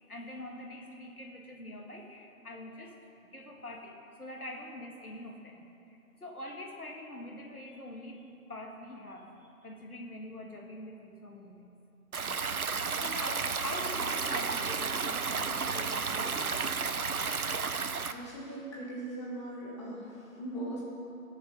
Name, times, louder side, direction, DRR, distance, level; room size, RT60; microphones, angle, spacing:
voice 1, 0.1-9.3 9.6-11.7 13.0-16.9, left 1 dB, 80° left, 0 dB, 2.1 m, -44 dB
Stream, 12.1-18.1, right 5 dB, 70° right, 0.8 m, -32 dB
Wind instrument woodwind instrument, 13.9-17.1, right 6 dB, 30° right, 0.8 m, -49 dB
voice 2, 18.1-20.8, right 1 dB, 20° left, -6 dB, 1.7 m, -40 dB
17.5 x 7.0 x 5.3 m, 2.9 s
figure-of-eight pair, 150°, 45 cm